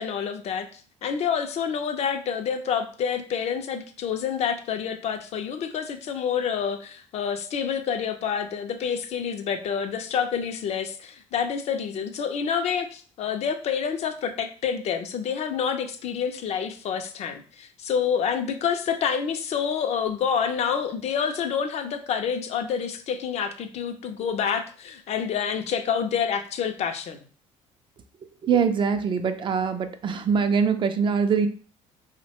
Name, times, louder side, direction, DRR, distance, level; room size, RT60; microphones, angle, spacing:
voice 1, 0.0-27.2, left 7 dB, 50° left, 8 dB, 0.4 m, -28 dB
voice 2, 28.4-31.5, right 6 dB, 35° right, 8 dB, 0.4 m, -23 dB
2.6 x 2.1 x 2.8 m, 0.40 s
supercardioid pair, 85°, 14 cm